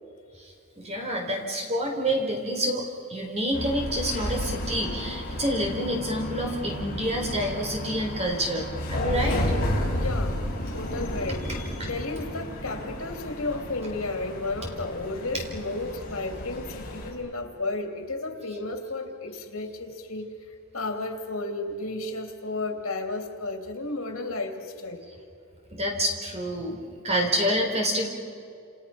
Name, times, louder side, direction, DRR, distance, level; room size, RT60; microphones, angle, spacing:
voice 1, 0.8-9.4 25.7-28.1, equal, 30° right, 1 dB, 4.2 m, -28 dB
sound 1, 3.5-17.1, left 1 dB, 40° left, 5.5 m, -32 dB
voice 2, 9.9-10.4 10.7-11.5 11.8-20.3 20.7-25.1, left 2 dB, 80° left, 4 dB, 3.1 m, -33 dB
29.0 x 29.0 x 5.9 m, 2.6 s
head